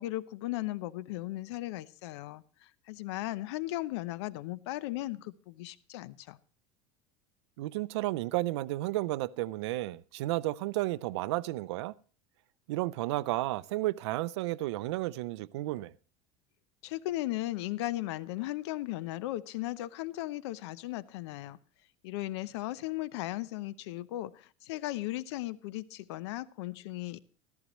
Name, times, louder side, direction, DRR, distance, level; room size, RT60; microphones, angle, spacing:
voice 1, 0.0-2.4 2.9-6.4 16.8-21.6 22.0-27.2, left 16 dB, 80° left, 0.8 m, -36 dB
voice 2, 7.6-11.9 12.7-15.9, right 17 dB, 85° right, 0.5 m, -32 dB
14.5 x 14.0 x 3.1 m
supercardioid pair, 155°, 14 cm